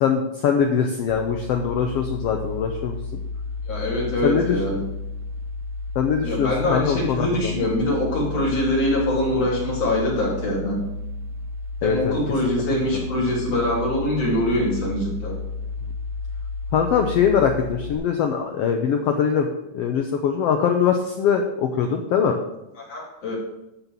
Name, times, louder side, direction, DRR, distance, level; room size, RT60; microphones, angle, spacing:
voice 1, 0.0-3.0 4.2-4.6 5.9-7.5 11.8-12.1 12.9-13.1 16.7-19.5 19.7-22.4, left 7 dB, 80° left, 4 dB, 1.4 m, -22 dB
sound 1, 1.1-17.9, left 3 dB, 85° right, 2.4 m, -32 dB
voice 2, 3.7-4.8 6.2-10.8 11.8-15.4 22.9-23.4, left 1 dB, 50° left, -5 dB, 4.2 m, -24 dB
12.0 x 4.3 x 6.9 m, 0.93 s
omnidirectional pair, 3.6 m